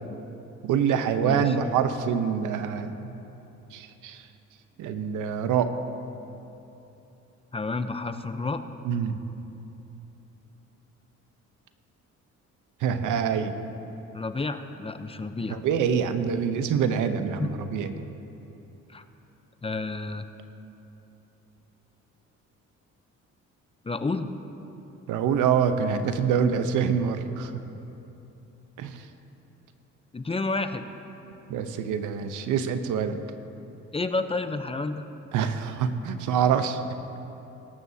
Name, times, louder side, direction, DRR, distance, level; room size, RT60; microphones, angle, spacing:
voice 1, 0.6-3.2 3.7-4.2 4.8-5.7 8.8-9.2 12.8-13.5 15.5-18.0 25.1-27.5 28.8-29.0 31.5-33.2 35.3-36.8, right 7 dB, 90° right, 9 dB, 0.8 m, -25 dB
voice 2, 1.2-1.5 7.5-8.6 14.1-15.6 17.4-17.5 18.9-19.0 19.6-20.3 23.8-24.3 30.1-30.9 33.9-35.0, left 3 dB, 20° left, 9 dB, 0.7 m, -30 dB
22.0 x 12.5 x 2.8 m, 3.0 s
cardioid pair, 90°, 30 cm